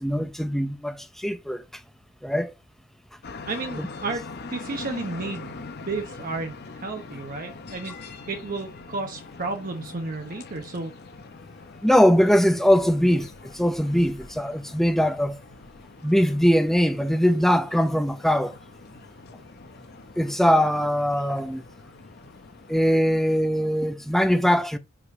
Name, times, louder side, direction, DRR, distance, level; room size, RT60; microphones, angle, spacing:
voice 1, 0.0-1.6 2.2-2.5 3.8-3.9 11.8-15.4 16.0-18.6 20.2-21.6 22.7-24.8, equal, ahead, 0.5 m, -21 dB
sound 1, 3.2-23.0, left 3 dB, 55° left, 0.8 m, -43 dB
voice 2, 3.5-4.2 4.5-5.6 5.8-10.9, right 3 dB, 45° right, 0.9 m, -32 dB
5.0 x 4.9 x 4.8 m
head